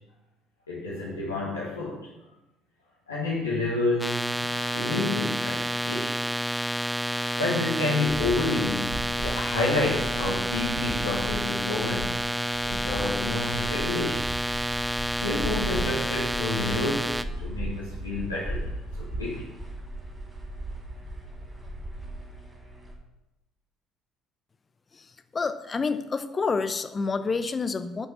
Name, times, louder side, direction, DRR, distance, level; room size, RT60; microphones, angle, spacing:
voice 1, 0.7-2.0 3.1-4.3 4.7-6.2 7.4-12.2 12.6-14.2 15.2-18.7 19.0-19.5, left 2 dB, 85° left, -7 dB, 1.7 m, -29 dB
sound 1, 4.0-17.2, equal, 5° right, 0.6 m, -29 dB
sound 2, 8.1-22.9, right 1 dB, 25° right, 3.6 m, -37 dB
voice 2, 25.3-28.1, left 4 dB, 30° left, 11 dB, 0.8 m, -28 dB
9.5 x 5.8 x 7.4 m, 0.95 s
figure-of-eight pair, 55°, 0 cm